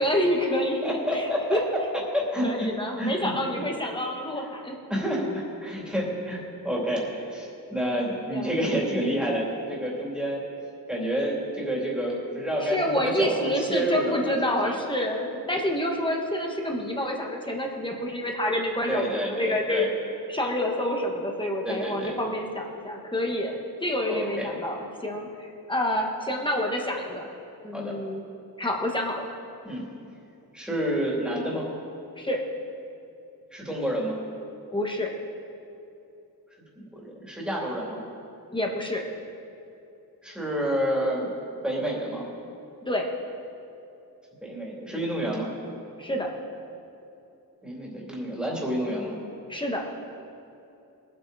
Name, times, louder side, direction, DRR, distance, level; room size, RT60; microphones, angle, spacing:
voice 1, 0.0-1.2 1.5-1.6 2.4-4.7 8.3-8.5 12.6-19.0 19.3-19.9 20.3-25.3 25.7-27.3 27.6-28.2 28.6-29.2 32.2-32.4 34.7-35.1 38.5-39.0 42.9-43.1 46.0-46.3 49.5-49.8, left 1 dB, 15° left, 0 dB, 1.5 m, -28 dB
voice 2, 0.5-1.6 2.1-2.7 3.0-3.7 4.9-10.4 10.9-14.7 18.9-19.9 21.6-22.2 24.1-24.5 27.7-28.0 29.6-29.8 30.5-31.7 33.5-34.2 36.8-38.0 40.2-41.3 41.6-42.2 44.4-45.5 47.6-49.2, equal, ahead, -4 dB, 3.0 m, -29 dB
22.0 x 8.3 x 4.1 m, 2.7 s
wide cardioid pair, 145°, 37 cm